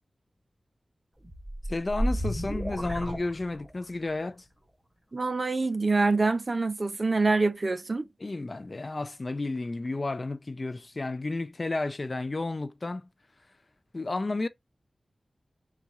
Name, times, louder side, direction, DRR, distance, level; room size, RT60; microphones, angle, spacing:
sound 1, 1.2-4.0, right 1 dB, 15° right, 1.6 m, -32 dB
voice 1, 1.7-4.4 8.2-13.0 13.9-14.5, left 2 dB, 45° left, 0.4 m, -32 dB
voice 2, 5.1-8.1, right 3 dB, 50° right, 0.5 m, -25 dB
4.1 x 2.4 x 4.6 m
wide cardioid pair, 60°, 0 cm